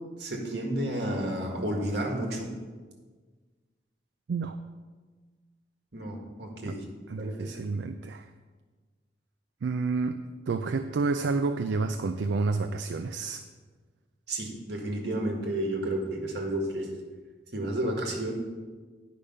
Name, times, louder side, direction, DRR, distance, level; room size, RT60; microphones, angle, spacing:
voice 1, 0.2-2.5 5.9-6.8 7.2-7.5 14.3-16.9 17.5-18.3, right 1 dB, 60° right, 0 dB, 1.7 m, -31 dB
voice 2, 4.3-4.6 6.7-6.8 7.1-8.3 9.6-13.4, right 4 dB, 80° right, 8 dB, 0.4 m, -29 dB
9.9 x 5.1 x 5.5 m, 1.4 s
head